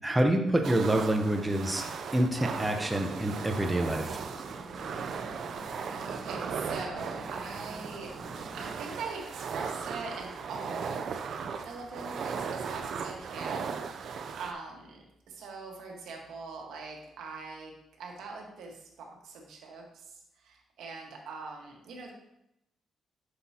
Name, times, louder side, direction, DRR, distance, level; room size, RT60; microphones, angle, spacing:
voice 1, 0.0-1.8 2.1-4.2, right 1 dB, 10° right, 4 dB, 0.9 m, -27 dB
sound 1, 0.6-14.5, right 6 dB, 65° right, 0.5 m, -37 dB
sound 2, 3.3-8.7, right 2 dB, 40° right, 1.4 m, -46 dB
voice 2, 5.9-8.1 8.5-11.3 11.6-22.1, right 4 dB, 85° right, 0 dB, 1.5 m, -43 dB
7.8 x 6.2 x 2.9 m, 0.81 s
cardioid pair, 85°, 0 cm